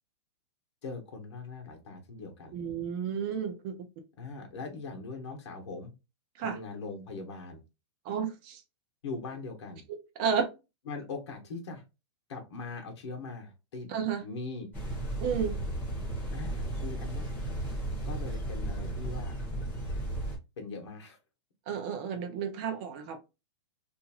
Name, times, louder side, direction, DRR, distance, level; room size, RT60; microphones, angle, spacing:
voice 1, 0.8-2.6 4.2-5.9 6.4-7.6 9.0-9.8 10.9-11.8 12.3-13.9 14.2-14.7 16.3-17.2 18.0-19.4 20.6-21.2, left 3 dB, 70° left, 1.0 m, -41 dB
voice 2, 2.5-3.7 6.4-6.6 8.1-8.6 10.2-10.5 13.9-14.2 15.2-15.6 21.7-23.2, right 7 dB, 25° right, 0.4 m, -32 dB
sound 1, 14.7-20.4, right 1 dB, 10° left, 0.8 m, -34 dB
2.9 x 2.5 x 2.3 m
supercardioid pair, 175°, 15 cm